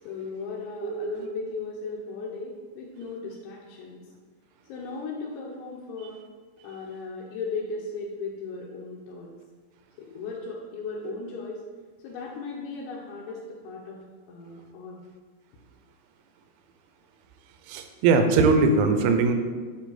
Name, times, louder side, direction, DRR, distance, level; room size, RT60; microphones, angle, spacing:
voice 1, 0.1-4.1 4.7-6.2 6.6-9.3 10.0-11.6 12.0-14.0 14.3-15.0, left 4 dB, 80° left, -4 dB, 2.5 m, -36 dB
voice 2, 0.8-1.3 17.7-19.3, right 4 dB, 90° right, 6 dB, 2.9 m, -21 dB
9.4 x 3.2 x 3.9 m, 1.5 s
omnidirectional pair, 5.2 m